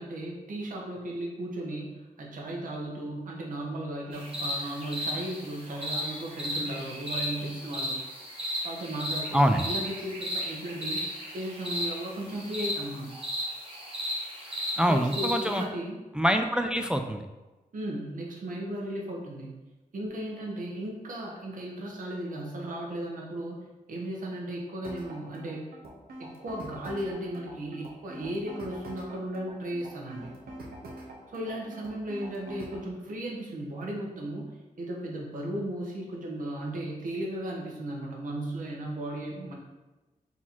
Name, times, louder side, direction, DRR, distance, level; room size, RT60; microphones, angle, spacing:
voice 1, 0.0-8.0 8.6-13.1 14.8-16.0 17.7-19.5 19.9-25.7 26.2-30.3 31.3-39.5, right 1 dB, 65° right, -2 dB, 1.1 m, -36 dB
sound 1, 4.1-15.6, equal, 40° right, 1.3 m, -35 dB
voice 2, 14.8-15.6 16.2-17.2, equal, 5° right, 5 dB, 0.3 m, -24 dB
sound 2, 24.8-32.9, right 1 dB, 85° right, 0.9 m, -44 dB
4.1 x 2.9 x 4.2 m, 1.1 s
wide cardioid pair, 95°, 15 cm